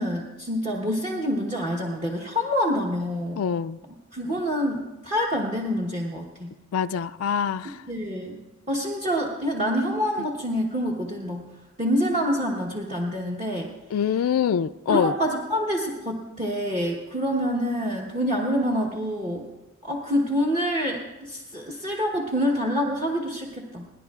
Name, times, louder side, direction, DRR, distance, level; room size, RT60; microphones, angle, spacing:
voice 1, 0.0-3.4 4.1-6.6 7.9-8.4 8.7-11.5 11.8-13.7 14.9-19.5 19.8-23.9, equal, 30° right, 1.2 m, -26 dB
voice 2, 3.4-3.8 6.7-7.8 10.2-10.3 13.9-15.1, left 7 dB, 75° left, 0.3 m, -25 dB
29.5 x 10.5 x 2.4 m
head